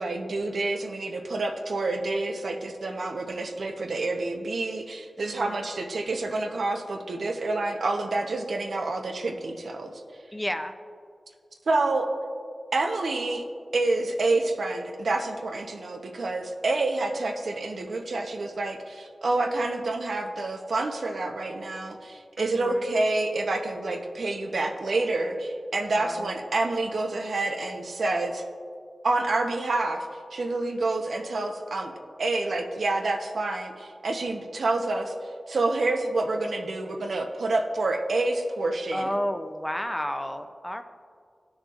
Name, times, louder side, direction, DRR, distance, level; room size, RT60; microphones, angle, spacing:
voice 1, 0.0-10.0 11.7-12.1 12.7-13.4 13.7-28.4 29.0-30.1 30.3-31.9 32.2-35.1 35.5-39.1, right 2 dB, 80° right, 3 dB, 0.8 m, -28 dB
voice 2, 5.2-5.7 10.3-10.7 22.4-22.9 26.0-26.4 38.9-40.8, equal, 10° left, 7 dB, 0.5 m, -32 dB
16.0 x 6.2 x 2.5 m, 2.2 s
wide cardioid pair, 70°, 0 cm